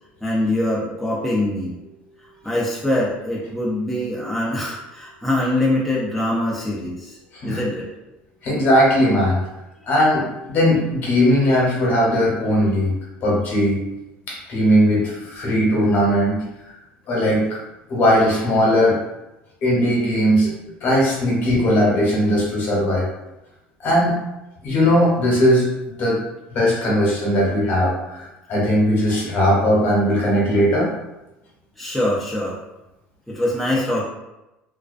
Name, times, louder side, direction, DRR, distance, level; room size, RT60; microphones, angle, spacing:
voice 1, 0.2-1.8 2.4-7.2 7.4-7.9 31.8-32.6 33.3-34.1, left 1 dB, ahead, -6 dB, 0.4 m, -23 dB
voice 2, 8.4-9.4 9.8-13.0 13.2-13.8 14.3-16.4 17.1-17.4 17.9-19.0 19.6-20.5 20.8-23.1 23.8-24.2 24.6-25.6 26.0-26.2 26.5-30.9, equal, 45° left, -4 dB, 0.9 m, -18 dB
2.4 x 2.1 x 2.4 m, 0.96 s
cardioid pair, 125°, 5 cm